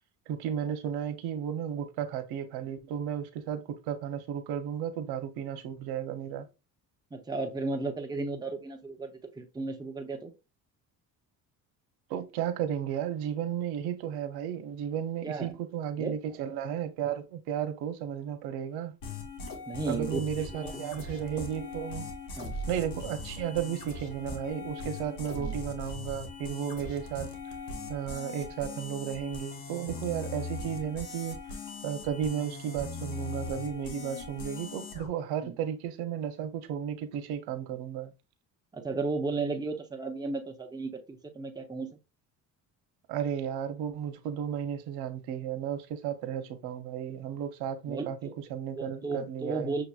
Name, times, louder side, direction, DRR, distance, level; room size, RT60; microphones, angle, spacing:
voice 1, 0.3-6.5 12.1-19.0 19.9-22.1 22.7-27.3 27.9-31.6 31.8-38.1 43.1-49.8, right 9 dB, 85° right, 0.7 m, -34 dB
voice 2, 7.1-10.3 15.2-15.5 16.0-16.2 19.7-20.7 22.4-22.6 25.4-25.5 27.8-27.9 35.4-35.6 38.7-41.9 47.9-48.3 48.8-49.8, right 3 dB, 10° right, 0.7 m, -34 dB
sound 1, 19.0-35.1, left 3 dB, 65° left, 1.4 m, -40 dB
6.3 x 2.9 x 2.3 m
cardioid pair, 105°, 37 cm